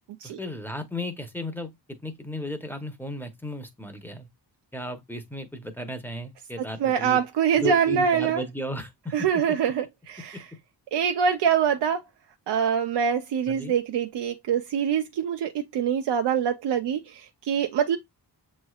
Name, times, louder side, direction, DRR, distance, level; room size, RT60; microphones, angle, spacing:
voice 1, 0.2-4.3 4.7-7.2 7.6-9.4 13.5-13.7, left 1 dB, 5° left, 0.8 m, -35 dB
voice 2, 6.6-8.4 9.1-10.4 10.9-12.0 12.5-18.0, right 7 dB, 90° right, 0.6 m, -24 dB
7.1 x 3.2 x 2.3 m
wide cardioid pair, 125°, 40 cm